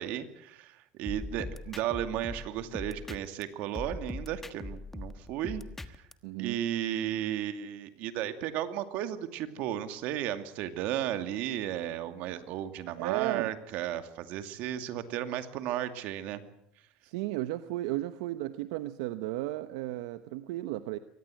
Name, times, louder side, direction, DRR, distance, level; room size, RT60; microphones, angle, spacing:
voice 1, 0.0-6.0 6.4-16.4, right 11 dB, 65° right, 9 dB, 2.4 m, -34 dB
sound 1, 1.1-3.4 3.7-6.1, left 2 dB, 10° left, 1.4 m, -40 dB
voice 2, 6.2-6.6 13.0-13.5 17.0-21.0, right 16 dB, 85° right, 12 dB, 0.9 m, -34 dB
24.0 x 19.0 x 7.8 m, 0.73 s
supercardioid pair, 120°, 3 cm